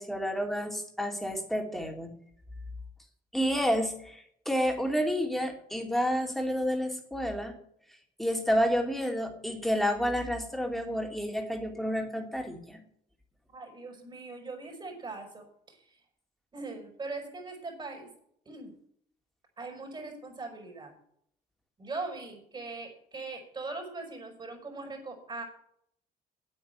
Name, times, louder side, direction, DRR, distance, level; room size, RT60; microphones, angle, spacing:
voice 1, 0.0-2.1 3.3-7.6 8.2-12.8, equal, ahead, 3 dB, 2.8 m, -30 dB
voice 2, 13.5-16.0 16.5-18.1 18.4-18.7 19.6-20.9 21.8-25.4, right 3 dB, 25° right, 3 dB, 5.0 m, -40 dB
9.0 x 8.5 x 8.9 m, 0.68 s
cardioid pair, 110°, 17 cm